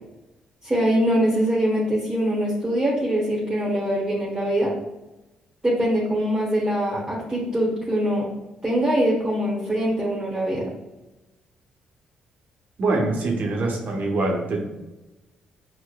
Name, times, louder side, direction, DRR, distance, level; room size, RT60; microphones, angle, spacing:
voice 1, 0.6-4.7 5.6-8.2 8.6-10.6, equal, 20° right, -6 dB, 1.1 m, -23 dB
voice 2, 12.8-14.6, right 2 dB, 55° right, 0 dB, 0.9 m, -24 dB
6.1 x 2.1 x 2.3 m, 1.0 s
hypercardioid pair, 45°, 3 cm